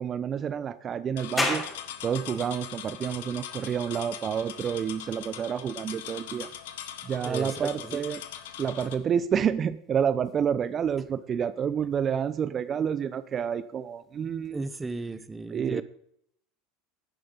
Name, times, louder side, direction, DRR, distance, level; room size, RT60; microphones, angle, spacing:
voice 1, 0.0-1.7 2.0-6.5 7.0-8.2 8.6-14.6 15.5-15.8, right 8 dB, 35° right, 15 dB, 0.7 m, -29 dB
sound 1, 1.2-8.9, left 10 dB, 75° left, 1.4 m, -41 dB
sound 2, 1.4-14.5, left 2 dB, 20° left, 6.0 m, -41 dB
voice 2, 7.1-8.0 14.5-15.8, right 3 dB, 15° right, 13 dB, 1.2 m, -35 dB
15.5 x 11.5 x 3.9 m, 0.70 s
hypercardioid pair, 80°, 0 cm